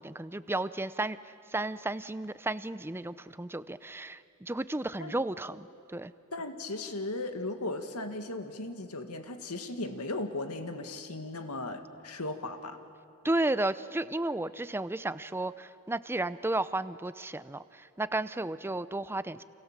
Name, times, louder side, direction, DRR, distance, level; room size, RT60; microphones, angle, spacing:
voice 1, 0.0-6.1 13.2-19.4, right 2 dB, 10° right, 14 dB, 0.6 m, -33 dB
voice 2, 6.3-12.8, left 2 dB, 85° left, 7 dB, 2.0 m, -37 dB
29.0 x 28.0 x 7.4 m, 2.6 s
head